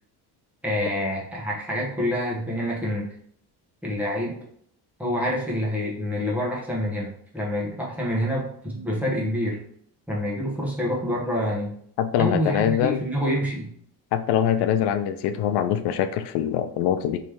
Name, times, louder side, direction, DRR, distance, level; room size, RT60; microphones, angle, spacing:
voice 1, 0.6-3.1 3.8-4.3 5.0-9.6 10.1-11.7 12.2-13.7, equal, 5° right, -5 dB, 1.1 m, -27 dB
voice 2, 12.0-13.0 14.1-17.2, left 9 dB, 85° left, 10 dB, 0.5 m, -23 dB
3.6 x 3.1 x 4.6 m, 0.65 s
cardioid pair, 160°, 40 cm